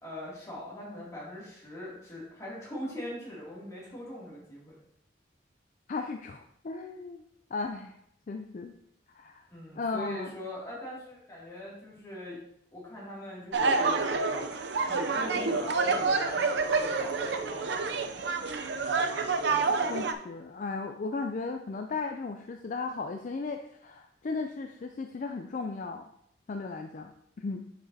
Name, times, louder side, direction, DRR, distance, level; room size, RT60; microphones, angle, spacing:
voice 1, 0.0-4.7 9.5-12.4 12.7-14.2 14.8-17.7, left 1 dB, 20° left, -6 dB, 2.5 m, -41 dB
voice 2, 5.9-7.2 7.5-7.9 8.3-8.8 9.1-9.5 9.8-10.3 19.9-26.1 26.5-27.1 27.4-27.6, left 4 dB, 45° left, 5 dB, 0.4 m, -36 dB
sound 1, 13.5-20.1, right 4 dB, 70° right, 0.5 m, -28 dB
7.5 x 6.0 x 2.8 m, 0.74 s
head